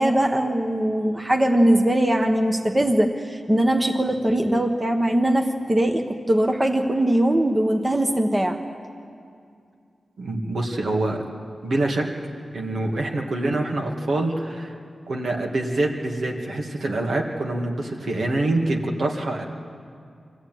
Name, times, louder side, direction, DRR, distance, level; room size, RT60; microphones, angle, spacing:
voice 1, 0.0-8.6, right 1 dB, 20° right, 3 dB, 1.3 m, -21 dB
voice 2, 10.2-11.2 11.6-12.1 12.5-14.7 15.1-19.4, right 2 dB, 75° right, 0 dB, 2.3 m, -25 dB
24.5 x 14.5 x 9.3 m, 2.4 s
wide cardioid pair, 120°, 0 cm